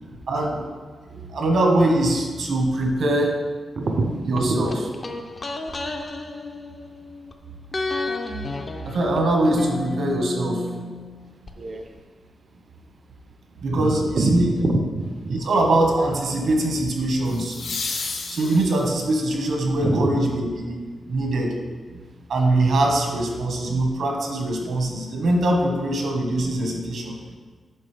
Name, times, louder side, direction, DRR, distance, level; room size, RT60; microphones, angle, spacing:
voice 1, 0.3-0.6 1.1-3.3 4.3-4.8 8.8-10.7 13.6-14.5 15.3-17.6 18.3-20.7 21.1-21.5 21.9-22.0 22.3-27.4, right 1 dB, 65° right, 1 dB, 1.3 m, -22 dB
voice 2, 3.8-4.7 11.6-11.8 13.7-15.4 19.8-20.1, right 2 dB, 45° right, 4 dB, 0.6 m, -24 dB
sound 1, 4.4-7.3 7.7-11.5 11.8-11.9, left 2 dB, 25° left, 0.5 m, -32 dB
sound 2, 14.2-14.6 17.2-19.1 22.0-22.1, left 4 dB, 75° left, 1.0 m, -32 dB
9.4 x 6.0 x 3.3 m, 1.5 s
wide cardioid pair, 175°, 0 cm